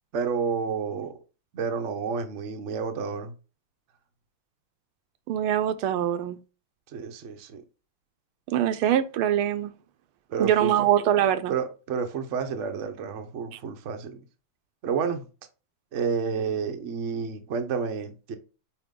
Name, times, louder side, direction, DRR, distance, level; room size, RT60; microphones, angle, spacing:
voice 1, 0.1-1.2 1.5-3.3 6.9-7.6 10.3-10.9 11.5-14.2 14.8-15.2 15.9-18.4, right 6 dB, 60° right, 0.7 m, -30 dB
voice 2, 5.3-6.4 8.5-9.7 10.4-11.5, right 11 dB, 85° right, 1.5 m, -23 dB
8.7 x 2.9 x 3.7 m
omnidirectional pair, 2.4 m